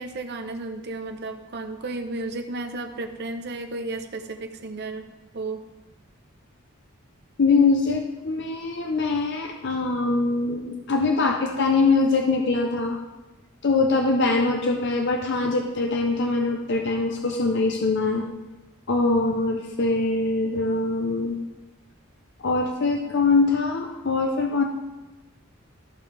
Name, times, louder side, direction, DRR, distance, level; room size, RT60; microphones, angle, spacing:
voice 1, 0.0-5.6, right 2 dB, 55° right, 5 dB, 0.8 m, -33 dB
voice 2, 7.4-13.0 13.6-18.2 18.9-21.4 22.4-24.6, left 3 dB, 55° left, 3 dB, 0.6 m, -23 dB
14.0 x 5.3 x 3.3 m, 1.1 s
head